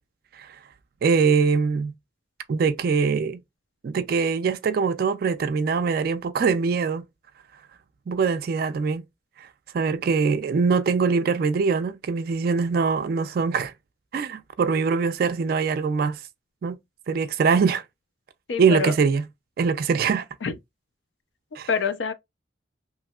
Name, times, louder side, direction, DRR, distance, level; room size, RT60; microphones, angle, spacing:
voice 1, 1.0-1.9 2.5-3.4 3.8-7.1 8.1-9.1 9.4-9.5 9.7-13.7 14.1-16.2 16.6-16.8 17.1-17.8 18.6-19.3 19.6-20.2 21.6-21.7, right 5 dB, 55° right, 0.3 m, -23 dB
voice 2, 18.5-18.9 20.4-20.5 21.7-22.1, left 5 dB, 75° left, 0.5 m, -25 dB
3.0 x 2.7 x 2.2 m
head